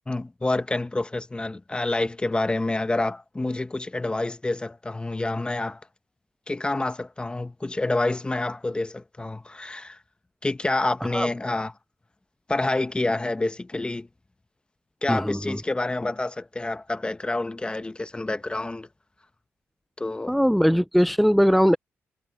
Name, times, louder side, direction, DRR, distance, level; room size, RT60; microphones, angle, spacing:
voice 1, 0.1-5.8 6.5-10.0 10.4-11.7 12.5-14.1 15.0-18.9 20.0-20.3, left 2 dB, 20° left, 1.2 m, -28 dB
voice 2, 15.1-15.6 20.3-21.8, equal, ahead, 0.6 m, -20 dB
cardioid pair, 65°, 5 cm